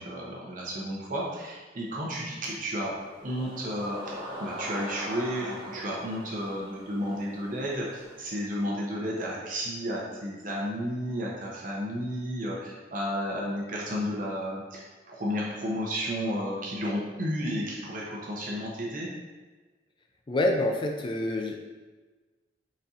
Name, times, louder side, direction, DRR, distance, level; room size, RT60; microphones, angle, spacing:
voice 1, 0.0-2.9 3.2-19.1, equal, 45° right, -3 dB, 0.7 m, -32 dB
sound 1, 2.9-8.4, equal, 25° right, 1.3 m, -42 dB
voice 2, 20.3-21.6, left 1 dB, 25° left, 3 dB, 0.4 m, -27 dB
4.1 x 3.6 x 2.7 m, 1.3 s
head